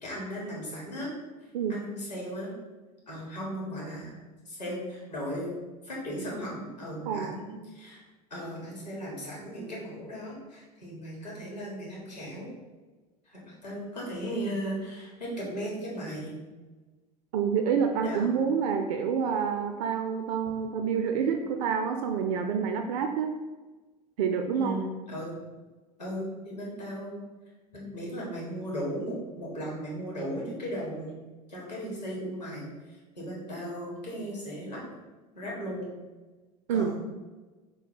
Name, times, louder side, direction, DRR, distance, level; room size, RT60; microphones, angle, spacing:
voice 1, 0.0-1.1 1.7-2.5 3.1-4.2 4.4-5.5 5.8-8.0 8.3-12.5 13.3-16.4 18.0-18.3 24.5-25.3 26.0-27.2 27.7-31.1 31.5-34.8 35.3-35.9 36.7-36.9, equal, 80° left, -4 dB, 1.5 m, -36 dB
voice 2, 7.1-7.4 17.3-23.3 24.2-24.8 36.7-36.9, right 6 dB, 55° right, 5 dB, 0.4 m, -28 dB
5.7 x 2.2 x 3.9 m, 1.2 s
figure-of-eight pair, 70°, 21 cm